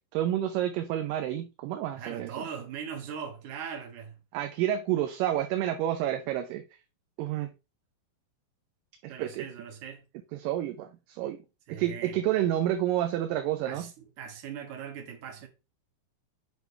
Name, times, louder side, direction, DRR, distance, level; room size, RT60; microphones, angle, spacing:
voice 1, 0.1-2.3 4.3-6.6 7.2-7.5 9.0-9.5 10.3-11.4 11.7-13.9, right 12 dB, 80° right, 2.2 m, -29 dB
voice 2, 2.0-4.2 9.1-10.1 11.7-12.2 13.7-15.5, right 7 dB, 60° right, 2.6 m, -40 dB
8.2 x 5.1 x 3.2 m
omnidirectional pair, 4.2 m